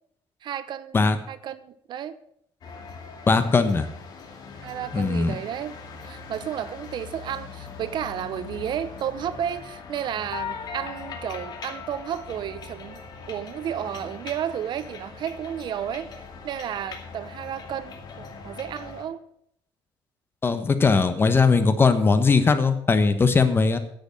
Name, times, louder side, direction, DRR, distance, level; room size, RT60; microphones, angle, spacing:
voice 1, 0.4-1.0 1.3-2.2 4.6-5.8 6.0-13.0 13.3-16.1 16.4-19.2, right 9 dB, 55° right, 14 dB, 0.8 m, -32 dB
sound 1, 2.6-19.0, left 5 dB, 45° left, 2.4 m, -40 dB
voice 2, 3.3-3.9 4.9-5.3 20.4-23.8, left 4 dB, 25° left, 10 dB, 1.2 m, -19 dB
10.5 x 8.0 x 7.2 m, 0.70 s
cardioid pair, 135°, 9 cm